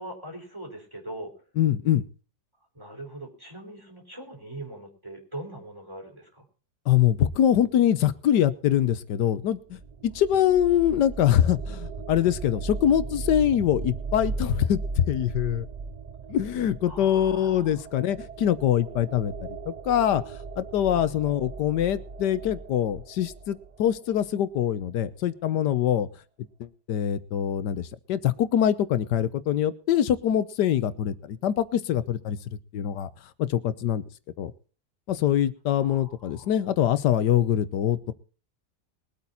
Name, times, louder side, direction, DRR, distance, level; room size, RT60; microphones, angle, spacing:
voice 1, 0.0-1.3 2.7-6.4 16.8-17.8 20.9-21.1 35.8-36.5, right 1 dB, 15° right, 1 dB, 4.4 m, -41 dB
voice 2, 1.6-2.0 6.9-9.8 10.0-15.7 16.3-20.2 20.6-26.1 26.6-32.4 32.7-33.1 33.4-34.0 34.4-34.5 35.1-38.1, left 10 dB, 85° left, 14 dB, 1.5 m, -24 dB
sound 1, 9.5-24.3, right 4 dB, 65° right, 0.4 m, -37 dB
22.0 x 8.6 x 4.0 m, 0.39 s
omnidirectional pair, 1.8 m